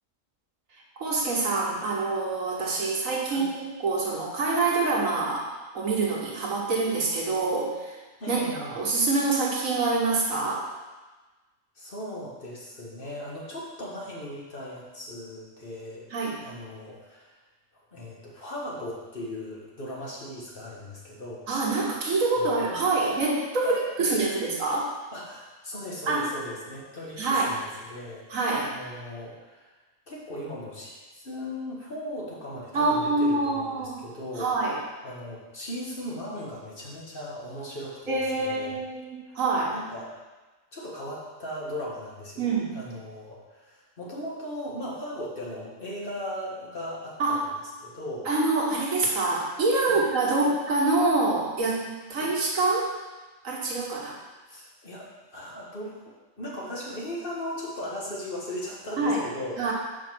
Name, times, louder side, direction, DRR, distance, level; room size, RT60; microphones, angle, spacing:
voice 1, 1.0-8.0 8.3-8.5 8.7-10.6 16.1-16.5 21.5-24.9 26.1-26.3 27.2-27.6 28.3-28.7 32.7-34.0 34.4-34.8 38.1-39.7 42.4-42.8 47.2-47.4 48.2-52.9 53.4-54.2 59.0-59.2 59.6-59.7, right 3 dB, 80° right, -3 dB, 1.7 m, -26 dB
voice 2, 8.2-8.8 11.7-16.1 16.4-17.4 17.9-21.5 22.3-22.6 23.6-24.3 25.1-28.3 28.5-29.7 30.1-34.7 35.0-38.8 39.3-39.4 39.7-40.1 40.7-47.4 47.8-48.3 49.8-50.0 50.4-50.5 52.2-52.3 54.5-56.0 56.4-59.7, left 1 dB, 45° left, -5 dB, 1.5 m, -38 dB
5.1 x 4.9 x 6.0 m, 1.2 s
omnidirectional pair, 1.4 m